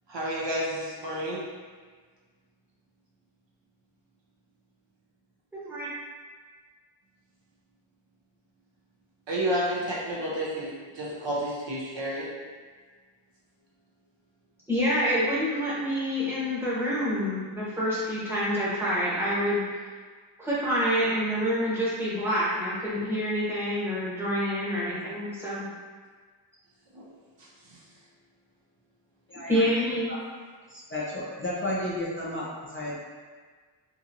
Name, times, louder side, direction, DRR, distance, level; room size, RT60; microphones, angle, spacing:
voice 1, 0.1-1.4 9.3-12.3 26.9-27.0 27.4-27.8 29.5-29.6, right 1 dB, 70° right, -5 dB, 0.7 m, -31 dB
voice 2, 5.5-5.9 14.7-19.8 20.4-25.7 29.5-30.1, equal, 5° right, -9 dB, 0.9 m, -27 dB
voice 3, 30.7-33.0, left 1 dB, 25° left, -7 dB, 0.5 m, -32 dB
2.9 x 2.7 x 2.5 m, 1.5 s
wide cardioid pair, 115°, 47 cm